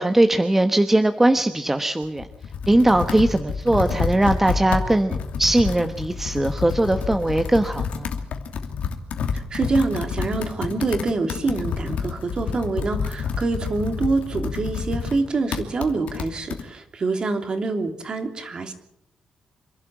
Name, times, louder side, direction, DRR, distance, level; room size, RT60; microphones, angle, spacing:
voice 1, 0.0-2.3 2.7-8.1, right 1 dB, 10° right, 7 dB, 1.2 m, -20 dB
Computer keyboard, 2.0-16.6, left 6 dB, 80° left, 2.7 m, -29 dB
voice 2, 9.3-18.7, right 3 dB, 40° right, 6 dB, 3.1 m, -26 dB
26.5 x 12.0 x 9.0 m, 0.80 s
cardioid pair, 115°, 2 cm